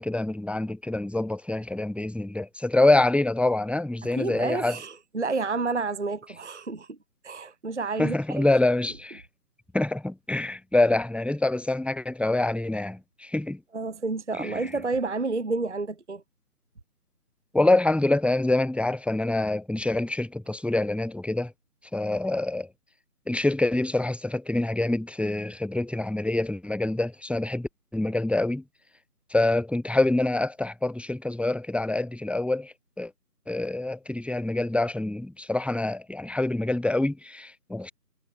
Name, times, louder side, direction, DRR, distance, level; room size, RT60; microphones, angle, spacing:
voice 1, 0.0-4.8 8.0-9.2 9.7-13.6 14.3-14.5 17.5-21.5 21.9-22.7 23.3-28.6 29.3-33.1 33.5-37.9, left 2 dB, 5° right, 0.3 m, -26 dB
voice 2, 4.0-7.0 7.2-8.5 13.7-16.2, right 3 dB, 50° right, 0.6 m, -30 dB
figure-of-eight pair, 165°, 47 cm